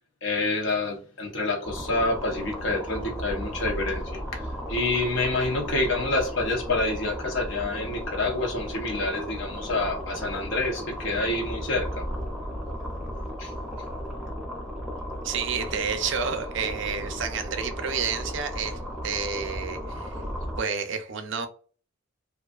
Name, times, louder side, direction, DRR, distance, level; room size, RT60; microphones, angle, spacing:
voice 1, 0.2-4.4 4.7-12.0 13.4-13.5, left 2 dB, 75° left, 0.8 m, -27 dB
sound 1, 1.6-20.6, equal, ahead, 0.5 m, -35 dB
voice 2, 15.2-20.1 20.6-21.5, right 6 dB, 65° right, 0.4 m, -30 dB
2.5 x 2.4 x 2.3 m
head